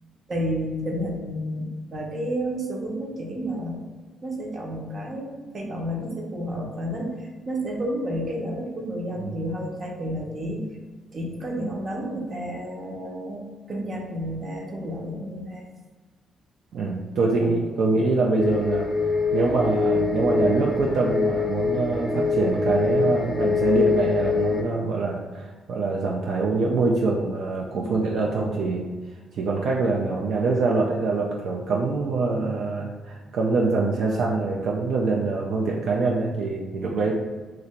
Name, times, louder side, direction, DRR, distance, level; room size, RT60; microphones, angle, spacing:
voice 1, 0.3-3.8 4.2-10.7 11.1-15.6 17.4-17.5 27.7-28.0, equal, 40° right, 0 dB, 0.8 m, -31 dB
voice 2, 16.7-18.9 19.3-28.9 29.4-37.1, right 3 dB, 70° right, -1 dB, 0.4 m, -24 dB
sound 1, 18.4-24.6, left 4 dB, 25° left, 0.6 m, -24 dB
2.8 x 2.5 x 4.3 m, 1.3 s
cardioid pair, 90°, 0 cm